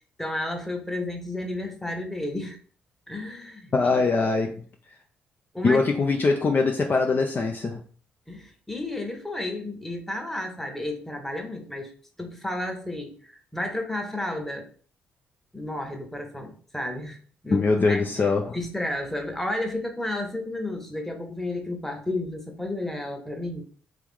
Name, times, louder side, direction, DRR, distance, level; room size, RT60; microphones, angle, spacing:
voice 1, 0.2-2.6 3.1-4.0 5.5-5.8 8.3-11.9 12.2-14.7 15.5-17.2 17.4-18.0 18.5-23.6, left 1 dB, 5° left, 1.1 m, -32 dB
voice 2, 3.7-4.6 5.6-7.8 17.5-18.6, left 4 dB, 35° left, 0.5 m, -22 dB
3.4 x 3.0 x 3.7 m
figure-of-eight pair, 40°, 5 cm